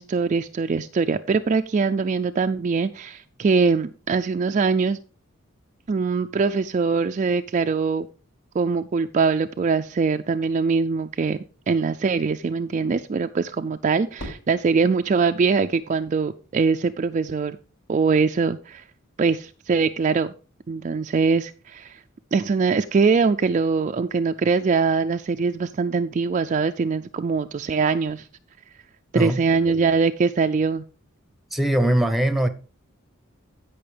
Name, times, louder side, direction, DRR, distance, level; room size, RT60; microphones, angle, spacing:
voice 1, 0.0-5.0 5.9-8.1 8.5-11.4 11.7-17.6 17.9-18.8 19.2-20.3 20.7-22.0 22.3-28.3 29.1-30.8, right 4 dB, 35° right, 0.3 m, -22 dB
Fireworks, 14.2-16.4, equal, 70° left, 5.4 m, -43 dB
voice 2, 31.5-32.5, right 1 dB, ahead, 0.8 m, -21 dB
15.5 x 5.5 x 3.3 m
head